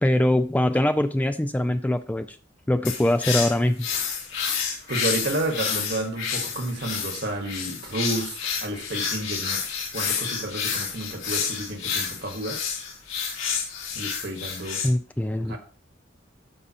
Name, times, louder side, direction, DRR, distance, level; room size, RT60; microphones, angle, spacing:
voice 1, 0.0-2.4 2.7-3.9 14.8-15.6, left 1 dB, 10° left, 0.3 m, -23 dB
sound 1, 2.8-14.9, left 6 dB, 80° left, 3.9 m, -29 dB
voice 2, 4.9-9.7 9.9-12.6 13.9-14.8 15.5-15.6, right 1 dB, 55° right, 1.6 m, -31 dB
13.5 x 5.4 x 2.9 m
head